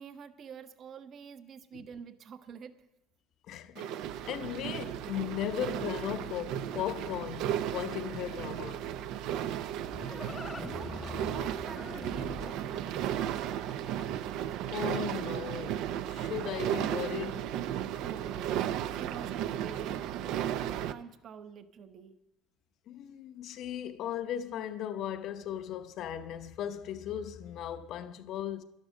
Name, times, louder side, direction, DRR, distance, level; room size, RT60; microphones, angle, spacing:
voice 1, 0.0-2.9 9.8-13.7 18.0-22.2, right 7 dB, 40° right, 0.9 m, -48 dB
voice 2, 3.5-3.9 4.2-8.8 14.7-15.8 16.1-17.6 22.9-28.6, left 10 dB, 55° left, 0.8 m, -37 dB
sound 1, 3.8-20.9, right 10 dB, 65° right, 0.6 m, -35 dB
Livestock farm animals working animals, 9.3-14.4, left 4 dB, 15° left, 0.7 m, -44 dB
11.5 x 11.5 x 6.4 m
cardioid pair, 125°, 0 cm